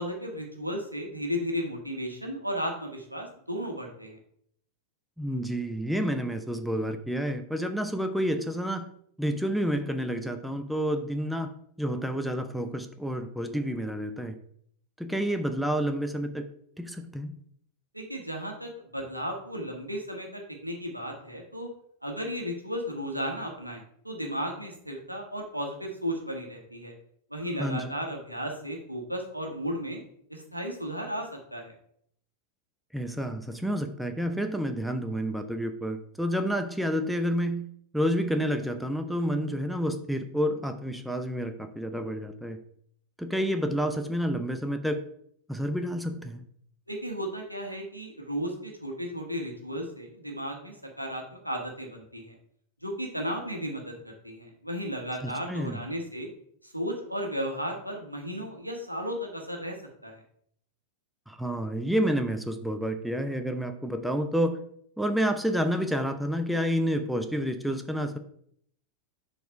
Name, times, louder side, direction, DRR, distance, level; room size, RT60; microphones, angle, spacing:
voice 1, 0.0-4.2 17.9-21.7 22.0-26.9 27.3-30.0 30.3-31.7 46.9-52.3 52.8-56.3 56.6-59.8 60.0-60.2, equal, 90° right, 1 dB, 1.3 m, -34 dB
voice 2, 5.2-8.8 9.2-11.5 11.8-14.4 15.0-16.5 16.8-17.3 27.6-28.0 32.9-37.7 37.9-42.6 43.2-45.0 45.5-46.4 55.2-55.8 61.3-64.6 65.0-68.2, equal, ahead, 7 dB, 0.6 m, -29 dB
6.8 x 4.0 x 4.7 m, 0.67 s
figure-of-eight pair, 90°, 0 cm